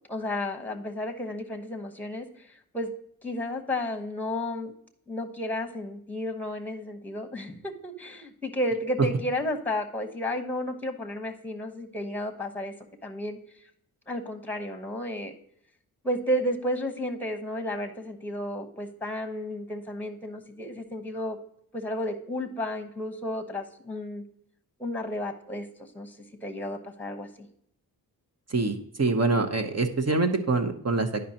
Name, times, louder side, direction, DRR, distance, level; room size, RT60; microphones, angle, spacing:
voice 1, 0.1-2.3 2.7-2.9 3.2-4.7 5.1-12.7 13.0-13.4 14.1-15.4 16.0-21.4 21.7-24.2 24.8-26.1 26.4-27.5, left 1 dB, 5° left, 6 dB, 1.1 m, -32 dB
voice 2, 28.5-31.2, right 3 dB, 40° right, 6 dB, 0.9 m, -25 dB
10.0 x 5.3 x 2.8 m, 0.68 s
cardioid pair, 65°, 38 cm